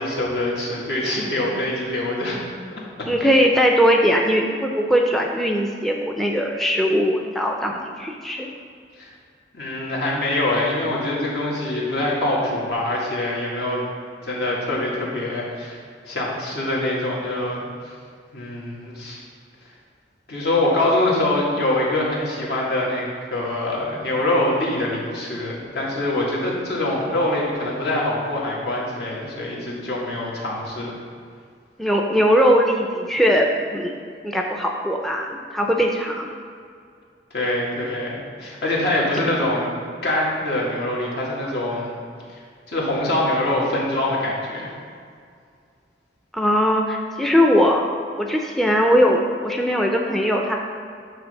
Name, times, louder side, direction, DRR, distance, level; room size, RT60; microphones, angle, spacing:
voice 1, 0.0-2.4 2.7-2.8 3.2-3.3 9.0-9.1 9.5-13.8 14.2-15.8 16.1-17.9 18.3-19.2 20.3-31.0 37.3-39.7 40.0-41.9 42.7-44.7, left 1 dB, 70° left, -5 dB, 1.9 m, -24 dB
voice 2, 3.1-8.5 31.8-33.9 34.2-36.3 46.3-47.8 48.2-50.6, equal, ahead, 1 dB, 0.4 m, -20 dB
8.9 x 3.3 x 6.4 m, 2.2 s
head